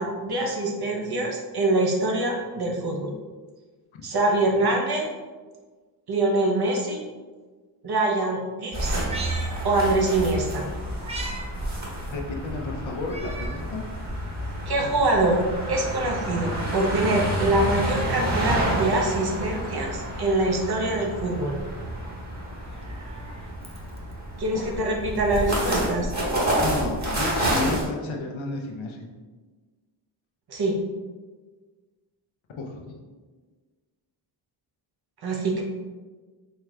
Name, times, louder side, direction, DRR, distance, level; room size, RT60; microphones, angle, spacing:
voice 1, 0.0-3.1 4.0-5.1 6.1-7.0 7.8-9.0 9.6-10.7 14.7-15.4 15.7-21.6 24.4-26.1 30.5-30.8 35.2-35.6, right 2 dB, 50° right, 0 dB, 0.9 m, -24 dB
sound 1, 8.7-27.8, right 1 dB, 35° right, 1.5 m, -29 dB
Meow, 8.9-10.3 10.6-11.5 11.8-11.9 13.0-13.7 14.2-14.3 15.3-16.3 17.8-18.8 20.2-21.0 22.5-24.1 25.3-25.4, right 2 dB, 15° right, 0.6 m, -41 dB
voice 2, 12.1-13.8 24.5-24.8 26.6-29.1 32.6-33.1, left 3 dB, 70° left, 1 dB, 0.8 m, -32 dB
4.5 x 3.1 x 2.4 m, 1.4 s
cardioid pair, 60°, 48 cm